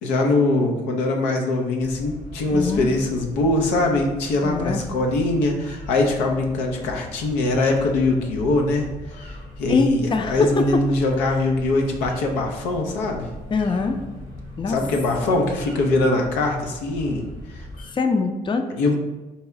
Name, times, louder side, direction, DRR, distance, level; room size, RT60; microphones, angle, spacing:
voice 1, 0.0-8.9 9.2-9.3 9.6-13.3 14.7-17.2 17.5-17.6 18.7-19.0, left 2 dB, 90° left, 2 dB, 0.5 m, -22 dB
sound 1, 1.8-17.9, left 2 dB, 55° left, 1.1 m, -39 dB
voice 2, 2.5-2.9 4.4-4.8 9.7-10.8 13.5-14.0 14.6-14.8 17.9-19.0, left 4 dB, 30° left, 7 dB, 0.4 m, -23 dB
4.1 x 2.3 x 3.6 m, 1.1 s
hypercardioid pair, 50°, 17 cm